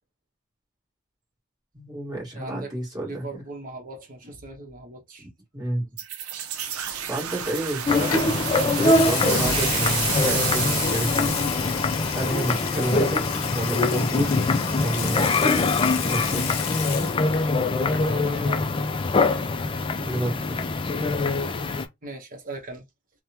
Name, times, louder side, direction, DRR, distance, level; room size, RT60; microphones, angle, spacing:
voice 1, 1.7-3.4 5.2-5.9 7.1-8.1 8.8-11.4 12.1-14.4 14.8-15.7 16.0-16.6 20.0-20.7, right 1 dB, 20° right, 1.7 m, -30 dB
voice 2, 2.3-2.7 3.1-5.3 12.7-13.1 18.0-18.6 22.0-22.8, right 2 dB, 40° right, 1.0 m, -38 dB
sound 1, 6.0-12.6, right 8 dB, 85° right, 0.6 m, -30 dB
sound 2, 7.9-21.9, left 3 dB, 25° left, 0.3 m, -24 dB
Water tap faucet / Sink (filling or washing) / Liquid, 8.1-8.3 8.8-17.5 17.8-18.2, left 8 dB, 75° left, 0.6 m, -31 dB
3.4 x 2.1 x 2.8 m
head